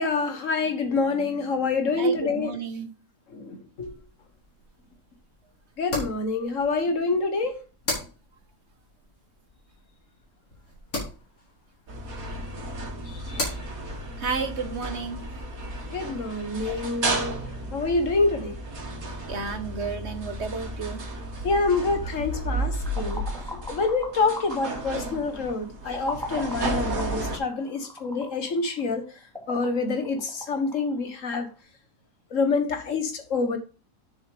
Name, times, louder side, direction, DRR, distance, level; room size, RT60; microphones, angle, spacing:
voice 1, 0.0-2.6 3.3-3.9 5.8-7.6 13.1-13.5 15.9-17.4 17.7-18.6 21.4-23.3 23.7-29.0 29.5-31.5 32.3-33.6, left 3 dB, 65° left, 1.7 m, -26 dB
voice 2, 2.0-2.9 14.2-15.2 19.3-21.0, right 5 dB, 55° right, 1.3 m, -32 dB
sound 1, 3.8-16.6, left 2 dB, 90° left, 4.8 m, -39 dB
sound 2, 11.9-27.4, right 2 dB, 90° right, 2.4 m, -33 dB
sound 3, 22.7-31.5, left 1 dB, 5° left, 2.2 m, -41 dB
8.8 x 7.1 x 5.0 m
omnidirectional pair, 1.5 m